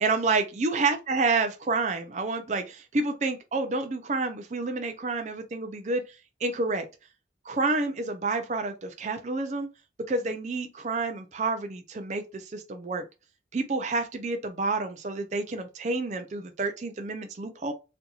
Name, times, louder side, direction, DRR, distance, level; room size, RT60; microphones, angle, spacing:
voice 1, 0.0-6.0 6.4-6.9 7.5-9.7 10.1-13.0 13.5-17.7, right 3 dB, 40° right, 0.4 m, -29 dB
4.2 x 2.7 x 2.4 m
head